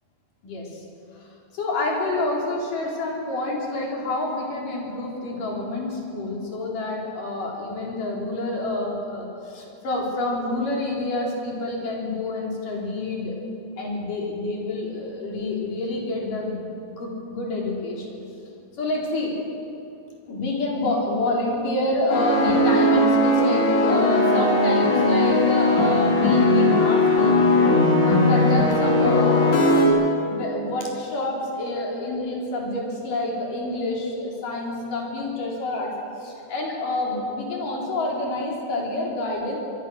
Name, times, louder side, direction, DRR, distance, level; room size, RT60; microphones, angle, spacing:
voice 1, 0.4-0.9 1.2-1.3 1.5-13.4 13.8-16.6 17.0-18.2 18.8-19.3 20.3-27.6 28.0-29.6 30.2-39.6, left 2 dB, 50° left, -2 dB, 5.3 m, -28 dB
sound 1, 22.1-29.9, left 2 dB, 90° left, 5.7 m, -18 dB
25.0 x 23.5 x 6.4 m, 2.7 s
omnidirectional pair, 5.1 m